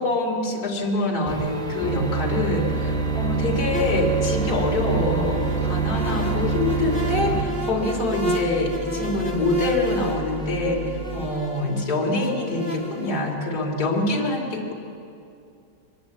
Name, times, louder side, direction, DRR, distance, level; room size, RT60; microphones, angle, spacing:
voice 1, 0.0-14.7, left 2 dB, 60° left, -1 dB, 3.4 m, -25 dB
sound 1, 1.3-7.4, right 5 dB, ahead, 3.4 m, -26 dB
sound 2, 2.7-11.3, right 6 dB, 60° right, 1.9 m, -35 dB
sound 3, 3.7-13.2, equal, 30° right, 2.3 m, -33 dB
23.5 x 20.5 x 8.3 m, 2.6 s
omnidirectional pair, 1.9 m